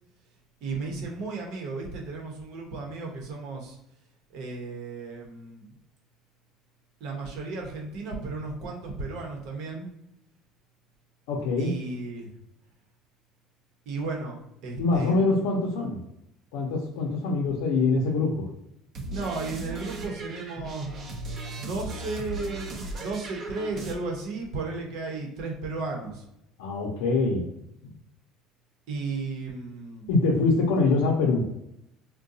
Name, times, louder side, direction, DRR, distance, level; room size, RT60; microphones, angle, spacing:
voice 1, 0.6-3.8 4.3-5.7 7.0-9.9 11.6-12.3 13.9-15.6 19.1-20.9 21.6-22.7 23.0-26.2 28.9-30.1, right 3 dB, 65° right, 0 dB, 0.9 m, -34 dB
voice 2, 11.3-11.7 14.8-16.0 16.5-18.5 26.6-27.5 27.8-27.9 30.1-31.5, left 3 dB, 85° left, -3 dB, 0.6 m, -24 dB
sound 1, 18.9-23.9, right 2 dB, 45° right, 0.6 m, -37 dB
3.7 x 2.2 x 2.6 m, 0.80 s
cardioid pair, 130°, 0 cm